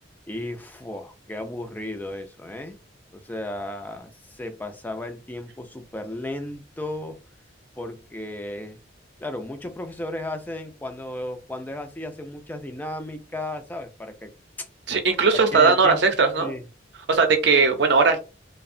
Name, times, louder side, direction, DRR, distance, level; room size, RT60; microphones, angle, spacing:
voice 1, 0.3-2.8 3.1-7.2 7.8-8.8 9.2-14.3 15.5-16.0 16.4-16.6, left 1 dB, 10° left, 0.3 m, -34 dB
voice 2, 14.9-16.5 17.1-18.2, right 4 dB, 65° right, 0.5 m, -18 dB
2.7 x 2.0 x 2.5 m
head